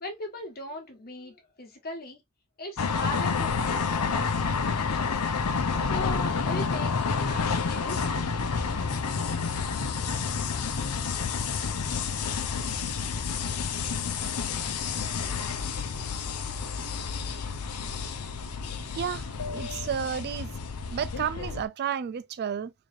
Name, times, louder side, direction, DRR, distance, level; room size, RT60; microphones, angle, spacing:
voice 1, 0.0-2.2 2.6-5.2 5.8-8.1, left 2 dB, 45° left, 1.4 m, -39 dB
sound 1, 2.8-21.6, left 5 dB, 85° left, 0.7 m, -29 dB
voice 2, 18.9-20.5 20.9-22.7, right 8 dB, 45° right, 0.3 m, -32 dB
3.9 x 3.3 x 2.5 m
head